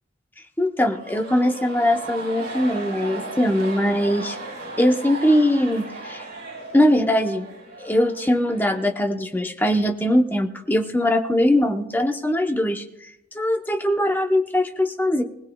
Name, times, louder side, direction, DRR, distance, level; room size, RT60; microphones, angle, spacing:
voice 1, 0.6-4.4 4.8-6.2 6.7-7.5 7.8-13.1 13.3-15.2, left 1 dB, 10° left, 4 dB, 0.8 m, -21 dB
sound 1, 0.9-9.3, right 2 dB, 55° right, 6.6 m, -36 dB
20.0 x 19.0 x 2.3 m, 0.87 s
head